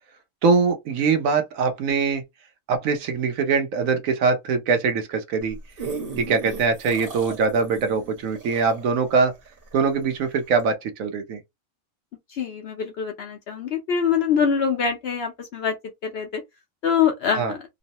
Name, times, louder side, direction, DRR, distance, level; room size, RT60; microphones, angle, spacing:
voice 1, 0.4-2.2 2.7-5.6 6.2-9.3 9.7-11.4 17.4-17.5, right 5 dB, 75° right, 1.1 m, -22 dB
sound 1, 5.4-10.1 10.6-10.7, right 4 dB, 45° right, 1.2 m, -36 dB
voice 2, 12.3-15.8 16.0-16.4 16.8-17.6, left 7 dB, 65° left, 0.7 m, -24 dB
3.0 x 2.0 x 2.7 m
omnidirectional pair, 1.4 m